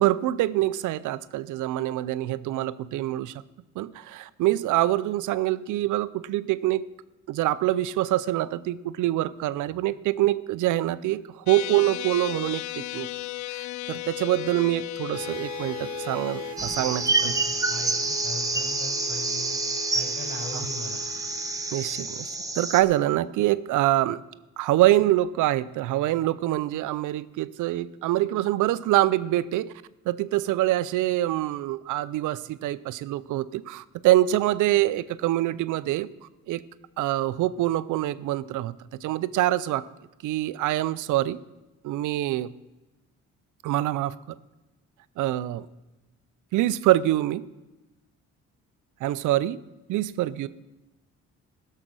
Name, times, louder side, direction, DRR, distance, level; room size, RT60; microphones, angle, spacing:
voice 1, 0.0-3.3 3.8-6.8 7.3-13.1 13.5-17.3 20.5-20.7 21.7-24.2 24.6-29.7 30.1-36.1 36.5-36.6 37.0-38.7 39.0-39.8 40.2-41.4 41.8-42.5 43.6-44.1 45.2-45.7 46.5-47.4 49.0-49.6 49.9-50.5, right 15 dB, 80° right, 16 dB, 0.6 m, -25 dB
sound 1, 11.5-16.6, left 17 dB, 70° left, 0.5 m, -35 dB
sound 2, 15.1-22.9, right 3 dB, 65° right, 1.0 m, -41 dB
sound 3, 16.6-22.8, right 3 dB, 10° right, 1.1 m, -28 dB
voice 2, 17.2-19.6 19.9-21.0, left 2 dB, 30° left, -1 dB, 5.0 m, -39 dB
16.0 x 6.7 x 6.1 m, 1.0 s
cardioid pair, 90°, 30 cm